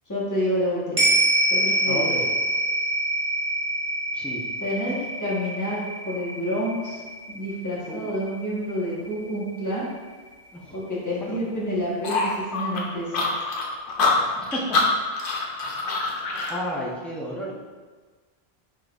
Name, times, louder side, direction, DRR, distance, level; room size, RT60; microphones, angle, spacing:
voice 1, 0.1-1.1 1.5-2.1 4.6-7.0 7.3-9.9 10.7-13.3, equal, 20° left, -7 dB, 1.1 m, -28 dB
sound 1, 1.0-9.5 9.9-10.0, right 1 dB, 15° right, 0.9 m, -26 dB
voice 2, 1.9-2.3 4.1-4.4 7.9-8.1 10.5-10.8 11.2-11.4 14.2-14.8 16.5-17.5, equal, ahead, -6 dB, 0.5 m, -32 dB
sound 2, 12.0-16.6, left 3 dB, 60° left, 0.8 m, -25 dB
5.0 x 4.0 x 2.4 m, 1.4 s
omnidirectional pair, 1.1 m